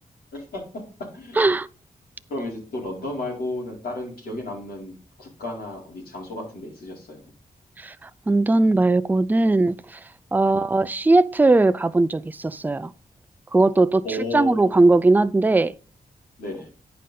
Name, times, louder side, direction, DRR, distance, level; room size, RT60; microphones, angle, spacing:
voice 1, 0.3-0.6 1.1-1.4 2.3-7.3 10.4-10.6 14.0-14.8 16.4-16.7, left 1 dB, 80° left, 4.0 m, -33 dB
voice 2, 1.4-1.7 7.8-7.9 8.3-10.0 10.3-12.9 13.5-14.0 14.3-15.7, right 2 dB, 10° right, 0.4 m, -19 dB
9.2 x 5.2 x 4.1 m
cardioid pair, 75°, 15 cm